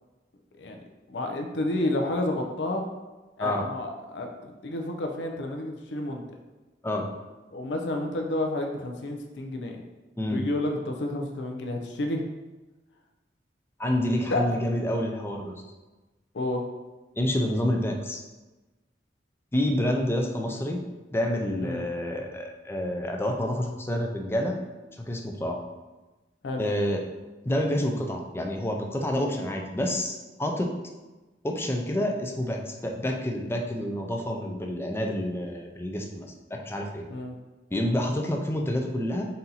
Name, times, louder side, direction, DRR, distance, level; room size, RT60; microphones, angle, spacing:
voice 1, 1.1-2.9 3.4-6.2 7.5-9.8 10.3-12.2 14.3-14.6 16.3-16.6 21.6-21.8 26.4-26.6 37.1-37.4, left 1 dB, 75° left, 3 dB, 0.5 m, -30 dB
voice 2, 13.8-15.6 17.2-18.2 19.5-20.8 21.1-24.6 25.0-25.6 26.6-27.0 27.5-30.7 31.4-37.0 37.7-39.3, left 1 dB, 15° left, 2 dB, 0.4 m, -28 dB
4.2 x 2.7 x 3.9 m, 1.2 s
head